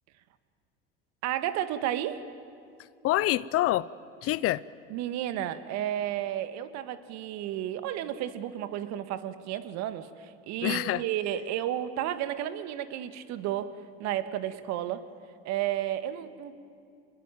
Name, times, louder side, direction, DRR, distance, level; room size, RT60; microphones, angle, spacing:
voice 1, 1.2-2.3 4.9-13.7 14.0-15.0 15.4-16.5, right 12 dB, 60° right, 12 dB, 1.8 m, -32 dB
voice 2, 3.0-3.9 4.2-4.6 10.6-11.0, left 15 dB, 50° left, 20 dB, 0.7 m, -26 dB
27.0 x 21.5 x 9.2 m, 2.4 s
hypercardioid pair, 85°, 31 cm